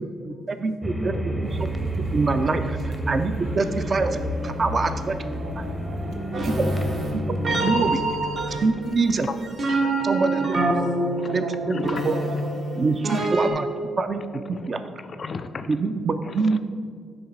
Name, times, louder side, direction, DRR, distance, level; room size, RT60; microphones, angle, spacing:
voice 1, 0.0-1.7 2.1-5.4 6.4-6.7 7.3-8.0 8.6-9.3 10.0-10.6 11.3-12.2 12.8-13.7 14.0-14.2 14.7-14.8 15.7-16.6, right 3 dB, 40° right, 9 dB, 0.4 m, -25 dB
sound 1, 0.8-7.9, right 1 dB, 5° right, 0.7 m, -29 dB
voice 2, 1.0-1.8 2.6-2.7 6.6-6.8 7.6-7.7 8.3-8.4 9.1-9.3 10.0-10.1 11.2-12.0 13.1-13.3 14.3-14.7 15.0-15.8 16.2-16.6, left 5 dB, 40° left, 11 dB, 0.4 m, -36 dB
sound 2, 1.4-8.7, right 1 dB, 75° right, 0.8 m, -41 dB
voice 3, 4.4-6.8 10.0-12.6, right 2 dB, 90° right, 2 dB, 1.1 m, -39 dB
sound 3, 6.3-13.5, right 2 dB, 55° right, 1.3 m, -26 dB
8.7 x 3.2 x 5.9 m, 2.2 s
cardioid pair, 90°, 0 cm